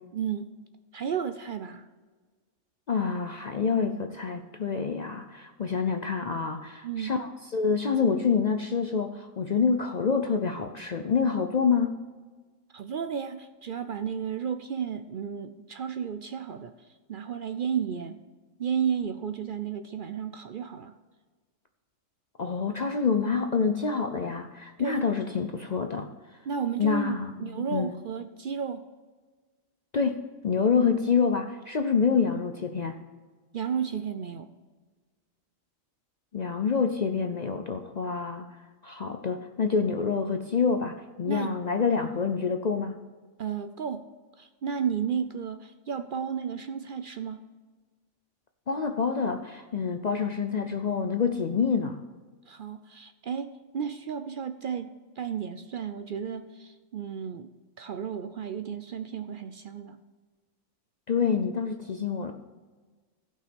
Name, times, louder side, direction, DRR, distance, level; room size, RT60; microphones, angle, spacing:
voice 1, 0.1-0.5 0.9-1.8 6.8-7.2 12.7-16.7 17.1-18.2 18.6-20.9 24.8-25.0 26.5-28.9 33.5-34.5 41.3-41.5 43.4-44.0 44.4-47.4 52.5-57.5 57.8-60.0, right 7 dB, 60° right, 9 dB, 0.5 m, -33 dB
voice 2, 2.9-12.0 22.4-26.1 26.8-27.9 29.9-33.0 36.3-38.5 38.8-42.9 48.7-52.0 61.1-62.3, left 5 dB, 55° left, 6 dB, 0.5 m, -27 dB
15.5 x 5.7 x 5.2 m, 1.4 s
omnidirectional pair, 1.4 m